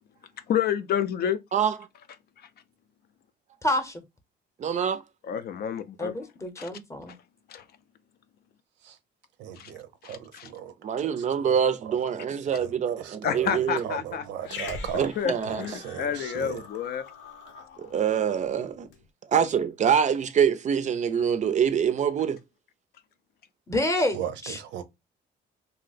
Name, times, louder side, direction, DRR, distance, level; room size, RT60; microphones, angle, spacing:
voice 1, 0.5-1.4 5.2-6.1 6.6-6.7 7.5-7.6 9.6-9.7 10.0-10.5 13.2-14.7 15.2-17.0, left 8 dB, 60° left, 0.4 m, -29 dB
voice 2, 3.6-4.0 6.0-7.1 23.7-24.6, left 1 dB, 15° left, 0.7 m, -28 dB
voice 3, 4.6-5.0 10.8-13.9 15.0-15.6 17.8-18.9 19.3-22.4, right 8 dB, 40° right, 0.4 m, -25 dB
voice 4, 9.4-11.5 11.8-13.5 13.8-15.1 15.5-16.6 24.1-24.8, right 9 dB, 85° right, 0.6 m, -38 dB
Growling, 14.4-19.0, left 4 dB, 85° left, 0.8 m, -43 dB
2.7 x 2.0 x 3.9 m
cardioid pair, 110°, 18 cm